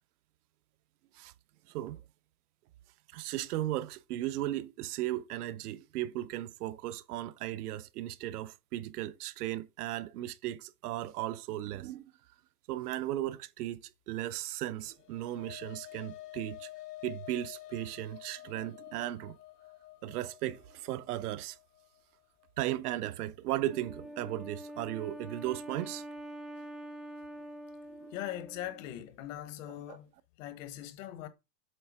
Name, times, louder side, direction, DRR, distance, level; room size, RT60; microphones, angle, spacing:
voice 1, 1.7-2.0 3.1-12.1 12.7-16.7 17.0-19.4 20.0-21.6 22.6-26.0 27.9-28.1 29.9-30.0, right 14 dB, 70° right, 0.8 m, -36 dB
sound 1, 14.7-23.3, left 16 dB, 80° left, 1.0 m, -50 dB
Wind instrument woodwind instrument, 23.7-29.1, right 1 dB, ahead, 0.3 m, -45 dB
voice 2, 28.1-30.1 30.4-31.3, left 12 dB, 55° left, 1.1 m, -41 dB
7.8 x 3.3 x 4.8 m
supercardioid pair, 135°, 47 cm